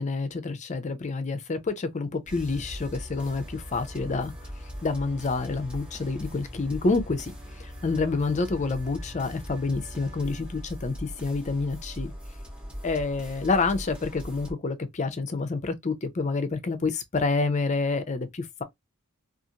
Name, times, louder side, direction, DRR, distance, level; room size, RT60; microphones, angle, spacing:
voice 1, 0.0-4.3 4.8-12.1 12.8-18.6, left 3 dB, 35° left, 0.5 m, -28 dB
sound 1, 2.3-14.5, equal, 5° right, 0.9 m, -40 dB
2.5 x 2.4 x 2.8 m
head